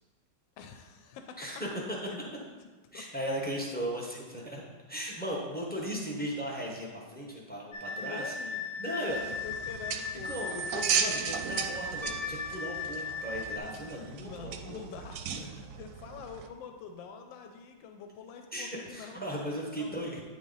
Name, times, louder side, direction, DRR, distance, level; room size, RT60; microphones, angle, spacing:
voice 1, 0.6-1.5 2.1-2.5 2.9-3.0 7.9-10.7 14.1-15.4 15.8-19.2 19.8-20.2, left 6 dB, 90° left, 5 dB, 1.3 m, -46 dB
voice 2, 1.4-1.7 2.9-4.6 4.9-8.3 8.8-9.2 10.2-14.8 15.4-15.6 18.5-20.2, equal, 10° left, -3 dB, 0.4 m, -37 dB
sound 1, 7.7-13.6, left 3 dB, 70° left, 1.0 m, -37 dB
sound 2, 9.1-16.5, right 7 dB, 70° right, 0.9 m, -36 dB
Piano, 12.0-13.6 16.0-16.1, left 1 dB, 30° left, 0.8 m, -46 dB
9.0 x 3.9 x 3.9 m, 1.3 s
omnidirectional pair, 2.0 m